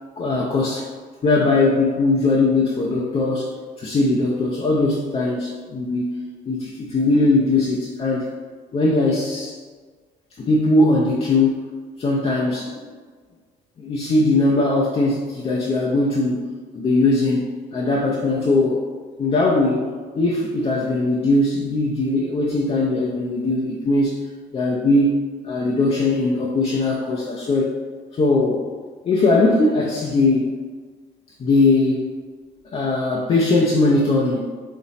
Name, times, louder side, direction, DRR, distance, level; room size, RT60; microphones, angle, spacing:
voice 1, 0.2-0.9 1.2-3.5 3.8-6.1 6.5-8.3 8.7-9.6 10.4-11.7 12.0-12.8 13.8-16.4 16.7-18.8 19.2-19.8 20.1-24.2 24.5-27.7 28.1-28.7 29.0-30.5 31.4-32.0 32.7-34.5, left 2 dB, 35° left, -3 dB, 0.6 m, -20 dB
4.1 x 3.0 x 4.1 m, 1.5 s
cardioid pair, 110°, 17 cm